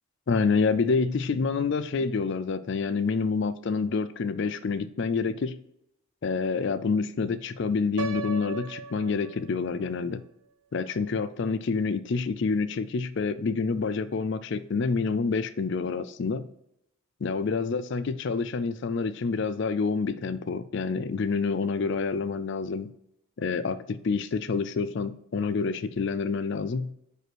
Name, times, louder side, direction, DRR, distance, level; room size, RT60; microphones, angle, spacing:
voice 1, 0.3-5.6 6.2-10.2 10.7-16.5 17.2-22.9 23.4-26.9, left 4 dB, 55° left, 14 dB, 0.4 m, -28 dB
Piano, 8.0-9.9, right 5 dB, 85° right, 0.7 m, -37 dB
6.0 x 5.4 x 4.6 m, 0.77 s
head